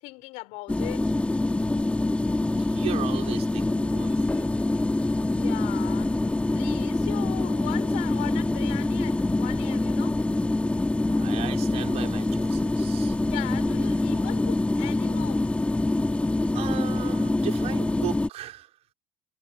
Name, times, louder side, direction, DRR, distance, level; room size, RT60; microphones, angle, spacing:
voice 1, 0.0-1.2 5.4-10.2 13.3-15.4, left 22 dB, 75° left, 5.2 m, -39 dB
sound 1, 0.7-18.3, left 2 dB, 10° left, 2.8 m, -25 dB
voice 2, 2.5-4.5 11.0-13.2 16.5-18.8, right 13 dB, 60° right, 5.9 m, -37 dB
supercardioid pair, 100°, 12 cm